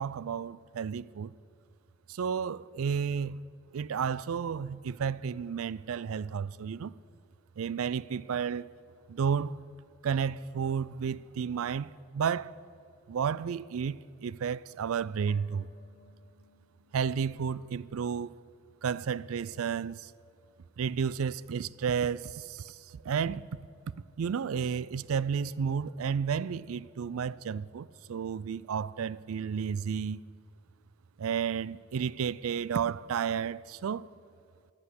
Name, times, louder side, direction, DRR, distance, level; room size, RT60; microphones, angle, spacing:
voice 1, 0.0-1.3 2.1-3.4 3.7-6.9 7.6-8.7 9.1-9.6 10.0-12.5 13.1-15.7 16.9-18.3 18.8-20.1 20.8-23.5 24.2-30.2 31.2-34.1, right 7 dB, 75° right, 0.4 m, -32 dB
sound 1, 15.3-18.6 18.8-18.9, left 4 dB, 80° left, 0.9 m, -61 dB
15.0 x 10.5 x 8.1 m
head